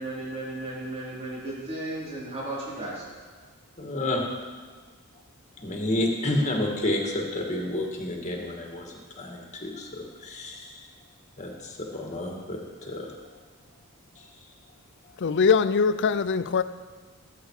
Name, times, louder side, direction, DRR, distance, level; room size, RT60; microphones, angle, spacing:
voice 1, 0.0-3.0, right 2 dB, 30° right, 4.4 m, -34 dB
voice 2, 3.8-4.2 5.6-8.9 9.2-10.7 11.4-13.1, left 1 dB, 35° left, 2.1 m, -30 dB
voice 3, 15.2-16.6, left 5 dB, 55° left, 0.5 m, -22 dB
18.5 x 8.4 x 4.8 m
head